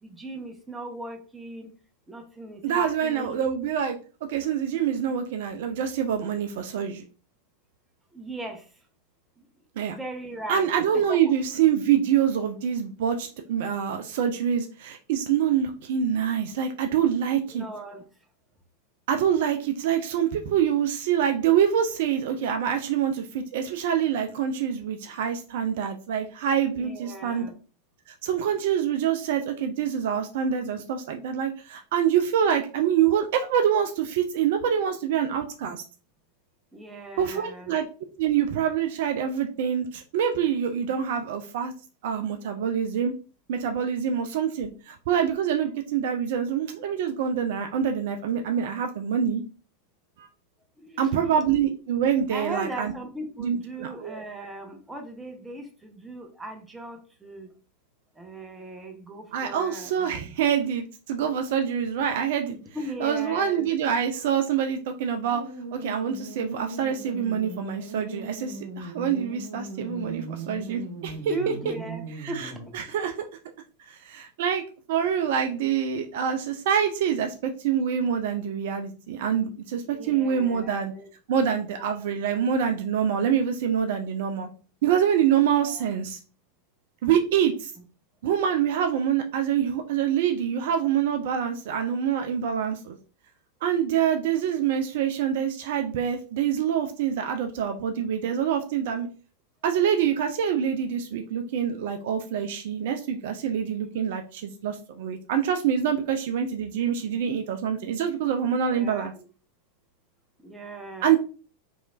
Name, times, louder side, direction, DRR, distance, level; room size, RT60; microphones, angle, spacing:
voice 1, 0.0-1.7 2.1-3.4 8.1-8.8 9.4-9.5 9.8-11.3 17.5-18.0 26.7-27.5 36.7-37.8 50.8-51.3 52.3-57.5 58.2-60.3 62.5-64.0 71.3-72.8 79.9-81.1 85.5-85.8 108.6-109.2 110.4-111.2, right 2 dB, 10° right, 3 dB, 0.7 m, -38 dB
voice 2, 2.6-4.0 4.3-7.1 9.8-9.9 10.5-17.7 19.1-27.5 28.1-35.8 37.2-37.8 38.2-41.7 42.0-43.1 43.5-49.4 50.2-50.3 51.0-52.9 53.4-54.2 59.3-62.5 63.0-65.4 65.7-71.3 72.2-73.1 73.9-74.6 74.9-80.9 81.3-84.5 84.8-86.2 87.0-87.7 88.2-93.0 93.6-99.1 99.6-109.1 111.0-111.2, right 8 dB, 55° right, 5 dB, 0.3 m, -26 dB
sound 1, 65.3-72.7, right 2 dB, 35° right, 1.0 m, -38 dB
3.1 x 2.9 x 2.4 m, 0.36 s
figure-of-eight pair, 90°, 0 cm